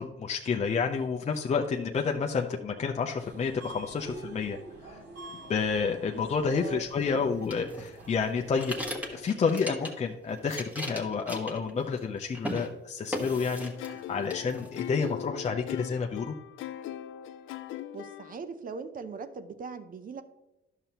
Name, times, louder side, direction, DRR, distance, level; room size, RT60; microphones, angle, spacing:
voice 1, 0.0-4.6 4.9-5.0 5.5-8.7 9.1-16.3, left 5 dB, 35° left, 2 dB, 0.6 m, -30 dB
Subway metro underground, 3.2-9.2, right 2 dB, 65° right, 2.8 m, -47 dB
voice 2, 6.1-6.8 17.9-20.2, right 5 dB, 45° right, 10 dB, 0.7 m, -40 dB
sound 1, 7.5-10.1 10.4-12.1 12.3-12.7 13.1-14.0 14.3-15.1, equal, 10° right, 1.4 m, -37 dB
sound 2, 13.3-18.4, left 10 dB, 80° left, 0.4 m, -40 dB
11.0 x 6.7 x 2.9 m, 0.95 s
cardioid pair, 90°, 20 cm